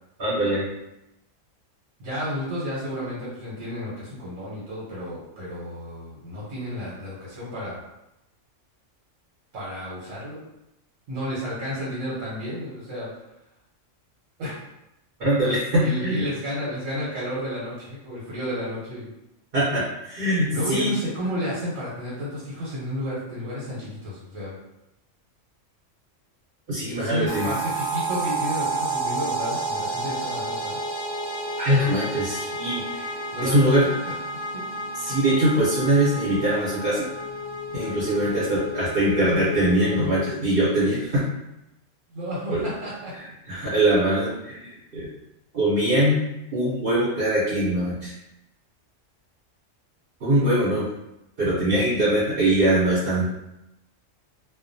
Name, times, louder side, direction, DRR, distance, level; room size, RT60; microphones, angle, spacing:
voice 1, 0.2-0.7 15.2-16.3 19.5-20.9 26.7-27.5 31.6-33.1 33.4-33.9 35.0-37.1 37.7-41.2 42.5-42.6 43.2-45.1 45.5-46.2 46.5-48.1 50.2-50.9 51.4-53.3, right 1 dB, 50° right, -9 dB, 0.9 m, -22 dB
voice 2, 2.0-7.8 9.5-10.4 11.1-13.1 14.4-14.6 15.8-19.1 20.5-24.6 26.9-30.8 33.3-34.0 38.2-38.4 42.1-43.1, equal, 85° right, -7 dB, 1.2 m, -31 dB
sound 1, 27.3-40.3, right 2 dB, 65° left, 0.7 m, -31 dB
2.5 x 2.2 x 2.5 m, 0.90 s
omnidirectional pair, 1.3 m